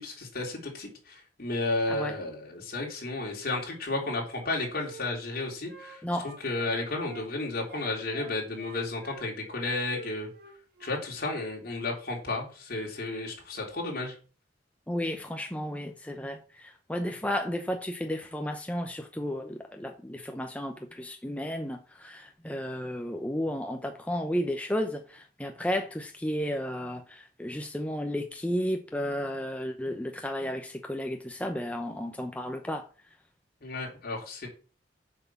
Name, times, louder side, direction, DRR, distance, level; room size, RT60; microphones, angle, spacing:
voice 1, 0.0-10.3 10.8-14.2 33.6-34.5, left 2 dB, 55° left, 3.6 m, -33 dB
Wind instrument woodwind instrument, 4.0-7.3 7.6-11.0, right 4 dB, 55° right, 1.6 m, -49 dB
voice 2, 14.9-32.8, equal, 10° left, 0.8 m, -33 dB
7.7 x 5.9 x 7.2 m
head